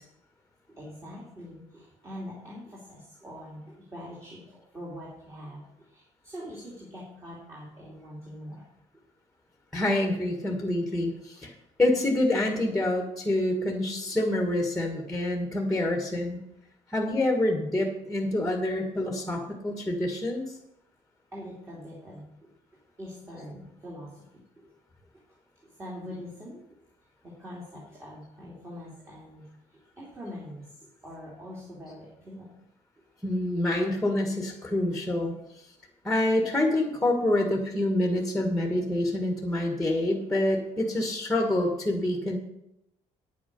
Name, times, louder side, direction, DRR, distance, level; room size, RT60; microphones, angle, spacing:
voice 1, 0.7-8.6 21.3-22.3 23.0-24.2 24.6-24.7 25.6-26.6 27.2-29.5 29.7-32.5 35.1-35.2, equal, 20° right, -5 dB, 2.9 m, -43 dB
voice 2, 9.7-11.5 11.8-16.4 16.9-20.6 33.2-35.3 36.0-42.4, left 1 dB, 5° left, 2 dB, 1.6 m, -27 dB
9.7 x 8.5 x 5.4 m, 0.82 s
cardioid pair, 160°, 13 cm